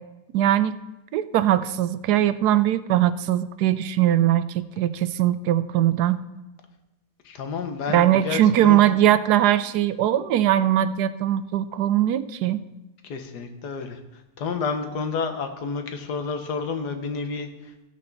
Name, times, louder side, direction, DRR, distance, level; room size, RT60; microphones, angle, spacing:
voice 1, 0.3-0.7 1.1-6.2 7.9-12.6, right 12 dB, 80° right, 14 dB, 1.1 m, -20 dB
voice 2, 7.2-8.8 13.0-17.7, left 5 dB, 85° left, 6 dB, 1.7 m, -30 dB
15.0 x 8.4 x 4.0 m, 1.0 s
omnidirectional pair, 1.7 m